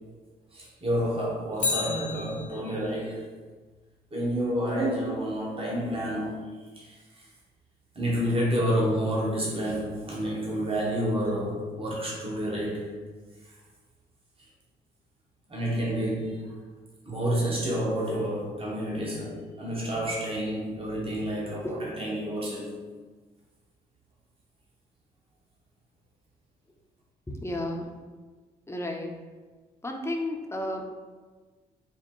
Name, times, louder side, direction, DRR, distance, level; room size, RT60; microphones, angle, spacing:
voice 1, 0.5-3.3 4.1-6.5 6.8-7.3 7.9-12.9 14.4-14.5 15.5-16.5 17.0-22.8, equal, 30° right, -4 dB, 1.3 m, -29 dB
Bicycle, 1.5-2.9 11.3-11.4, left 5 dB, 45° left, 0.8 m, -32 dB
voice 2, 27.3-28.0 28.7-29.2 29.8-30.8, left 1 dB, 15° left, 1 dB, 0.8 m, -32 dB
4.7 x 2.1 x 3.8 m, 1.4 s
supercardioid pair, 50°, 18 cm